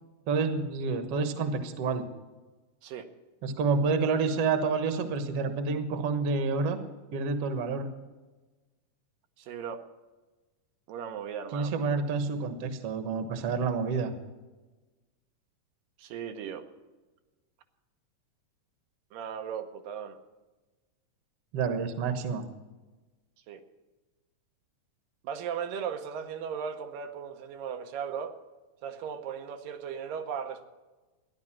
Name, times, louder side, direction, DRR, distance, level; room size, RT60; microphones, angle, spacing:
voice 1, 0.3-2.0 3.4-6.8 7.1-7.9 11.5-14.1 21.5-22.4, right 4 dB, 55° right, 8 dB, 1.8 m, -28 dB
voice 2, 9.4-9.8 10.9-11.7 16.0-16.6 19.1-20.2 23.5-23.6 25.2-28.4 28.8-30.6, right 7 dB, 80° right, 6 dB, 2.6 m, -37 dB
14.0 x 10.5 x 7.4 m, 1.2 s
omnidirectional pair, 3.9 m